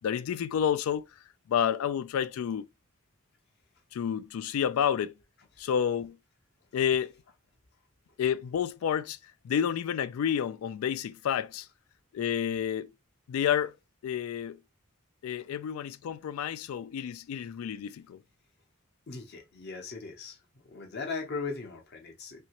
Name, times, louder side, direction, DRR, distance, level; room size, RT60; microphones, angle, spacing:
voice 1, 0.0-1.1 1.5-2.7 3.9-5.1 5.6-6.2 6.7-7.1 8.2-9.2 9.4-11.7 12.1-12.9 13.3-13.7 14.0-14.6 15.2-18.2, left 8 dB, 90° left, 0.3 m, -29 dB
voice 2, 19.1-20.4 20.7-22.4, left 4 dB, 50° left, 0.8 m, -38 dB
2.8 x 2.6 x 2.9 m
head